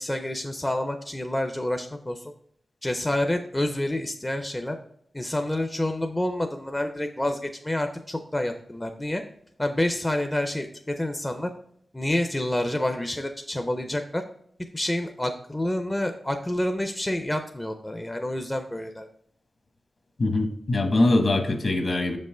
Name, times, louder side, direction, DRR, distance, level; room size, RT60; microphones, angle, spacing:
voice 1, 0.0-2.3 2.8-4.8 5.1-9.2 9.6-11.5 11.9-14.2 14.7-19.1, left 1 dB, 15° left, 6 dB, 0.5 m, -28 dB
voice 2, 20.2-22.2, left 2 dB, 50° left, 5 dB, 1.0 m, -22 dB
6.7 x 5.3 x 3.7 m, 0.69 s
wide cardioid pair, 115°, 0 cm